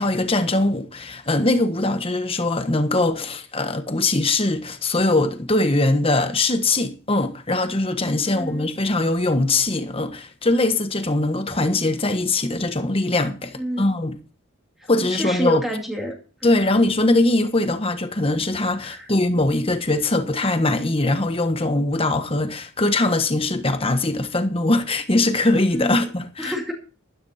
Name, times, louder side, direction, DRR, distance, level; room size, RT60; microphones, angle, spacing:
voice 1, 0.0-14.2 14.9-15.6 16.4-26.5, left 2 dB, 25° left, 1.3 m, -21 dB
voice 2, 8.2-8.7 13.5-13.8 14.8-16.6 18.8-19.1 25.7-26.1 26.4-26.7, equal, ahead, 2.3 m, -29 dB
13.5 x 13.0 x 4.3 m
head